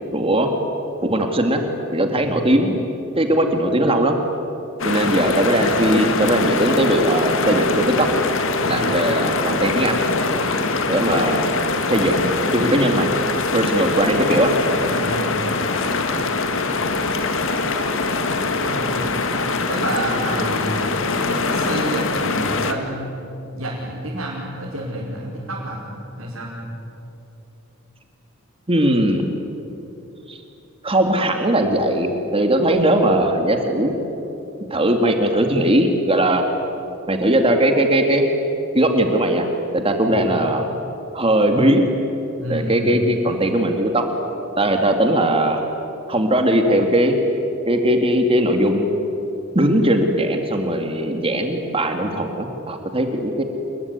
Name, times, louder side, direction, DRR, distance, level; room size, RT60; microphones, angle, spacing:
voice 1, 0.1-0.5 1.0-2.9 3.2-4.2 4.8-8.1 8.6-10.0 10.9-11.5 11.9-13.1 13.5-14.5 28.7-29.2 30.3-30.4 30.8-33.9 34.7-36.4 37.1-38.2 38.7-39.4 39.7-40.6 41.1-41.9 42.5-44.0 44.6-45.6 46.1-47.2 47.7-48.9 49.5-53.4, right 1 dB, 25° right, 4 dB, 2.2 m, -19 dB
sound 1, 4.8-22.7, left 3 dB, 65° left, 2.0 m, -23 dB
voice 2, 14.9-15.3 18.5-19.1 19.7-20.9 21.3-23.1 23.5-25.8 26.2-26.5 40.0-40.2 42.4-42.9, right 1 dB, 70° right, -6 dB, 5.5 m, -29 dB
27.5 x 22.0 x 9.7 m, 2.9 s
head